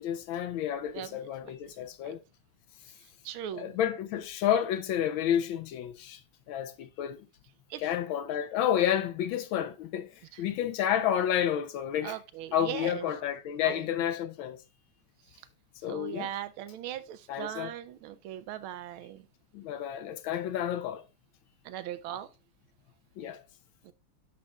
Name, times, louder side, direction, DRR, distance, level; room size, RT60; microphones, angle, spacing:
voice 1, 0.0-2.2 3.6-6.2 6.5-7.3 7.8-10.1 10.4-12.2 12.5-14.6 15.8-16.3 17.3-17.7 19.5-21.0 23.2-23.4, left 10 dB, 75° left, 1.2 m, -30 dB
voice 2, 1.4-2.1 3.2-3.8 7.7-7.8 10.3-10.4 12.0-13.1 13.6-13.8 15.9-19.2 21.6-22.3 23.8-23.9, right 11 dB, 75° right, 1.4 m, -39 dB
11.0 x 5.5 x 2.3 m
omnidirectional pair, 2.4 m